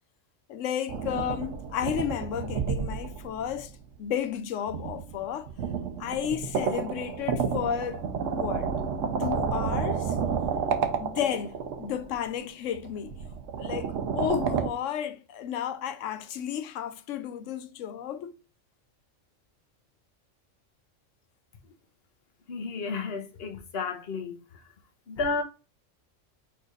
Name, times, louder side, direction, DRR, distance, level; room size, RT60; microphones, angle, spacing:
voice 1, 0.5-3.7 4.0-5.5 6.0-8.7 9.2-10.2 11.0-13.2 13.6-18.4, left 9 dB, 85° left, 1.0 m, -32 dB
sound 1, 0.9-3.9 4.7-12.1 12.7-14.7, right 6 dB, 90° right, 1.1 m, -31 dB
voice 2, 22.5-24.4 25.1-25.4, left 4 dB, 55° left, 1.1 m, -32 dB
4.6 x 4.5 x 2.4 m
omnidirectional pair, 1.3 m